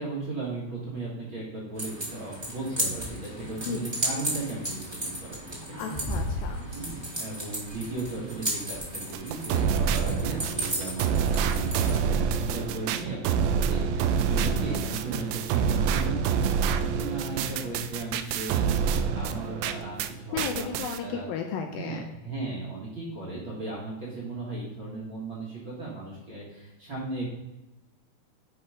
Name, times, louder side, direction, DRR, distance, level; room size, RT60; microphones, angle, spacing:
voice 1, 0.0-5.9 6.7-21.3 21.7-27.3, right 3 dB, 45° right, -5 dB, 1.7 m, -36 dB
sound 1, 1.8-12.0, right 1 dB, 15° right, 0.8 m, -34 dB
voice 2, 5.8-6.7 20.3-22.0, left 7 dB, 80° left, 4 dB, 2.2 m, -34 dB
sound 2, 9.1-20.1 20.4-21.0, right 6 dB, 85° right, 2.1 m, -27 dB
10.0 x 4.0 x 5.0 m, 1.0 s
omnidirectional pair, 4.7 m